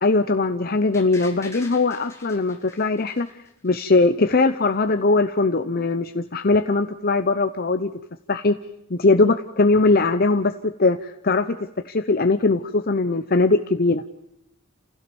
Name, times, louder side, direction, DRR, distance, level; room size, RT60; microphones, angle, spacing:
voice 1, 0.0-3.4 3.6-7.9 8.3-8.5 8.9-10.5 10.8-11.6 11.8-14.0, left 3 dB, 45° left, 8 dB, 0.8 m, -20 dB
sound 1, 0.9-3.9 4.2-4.3, left 3 dB, 15° left, 3.4 m, -44 dB
29.0 x 16.5 x 7.1 m, 0.82 s
head